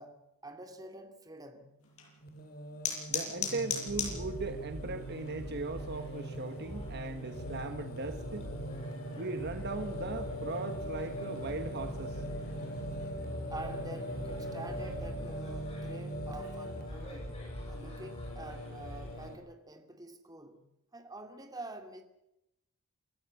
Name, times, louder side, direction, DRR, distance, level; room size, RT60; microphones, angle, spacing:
voice 1, 0.0-1.7 13.5-20.6 20.9-22.0, right 2 dB, 15° right, 2.6 m, -47 dB
sound 1, 1.8-13.0, left 7 dB, 75° left, 7.5 m, -44 dB
Singing, 2.2-19.3, equal, 45° left, 2.9 m, -41 dB
voice 2, 3.1-8.5 9.1-12.2, right 3 dB, 50° right, 1.4 m, -38 dB
sound 2, 3.9-19.3, equal, 30° left, 7.4 m, -46 dB
28.0 x 13.5 x 8.4 m
head